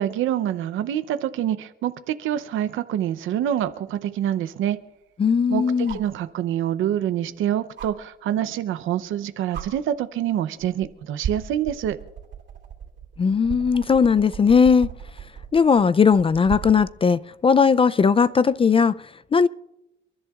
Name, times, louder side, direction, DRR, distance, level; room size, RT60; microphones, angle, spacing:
voice 1, 0.0-4.8 5.5-12.0, right 11 dB, 85° right, 0.7 m, -26 dB
sound 1, 3.6-3.7 5.8-6.2 7.8-7.9 9.0-9.1 9.5-9.7 10.6-10.9 11.2-16.9 18.5-18.6, right 9 dB, 65° right, 2.8 m, -35 dB
voice 2, 5.2-6.0 13.2-14.9 15.5-19.5, left 6 dB, 30° left, 0.4 m, -18 dB
30.0 x 11.0 x 2.4 m
cardioid pair, 90°, 20 cm